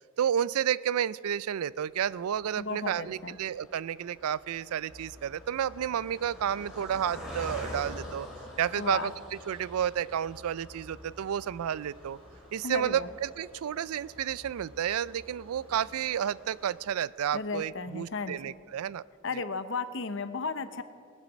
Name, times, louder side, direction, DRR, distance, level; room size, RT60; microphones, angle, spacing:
voice 1, 0.2-8.3 8.6-9.1 9.5-12.2 12.5-19.0, right 9 dB, 90° right, 20 dB, 0.4 m, -31 dB
Car passing by, 2.0-17.5 18.0-18.1 18.3-18.5, left 1 dB, ahead, 3.6 m, -47 dB
voice 2, 2.6-3.4 8.8-9.1 12.6-13.1 17.3-18.4 19.2-20.8, left 4 dB, 60° left, 11 dB, 0.8 m, -34 dB
sound 1, 4.9-16.8, equal, 30° right, 3.1 m, -54 dB
19.5 x 9.9 x 6.2 m, 2.3 s
head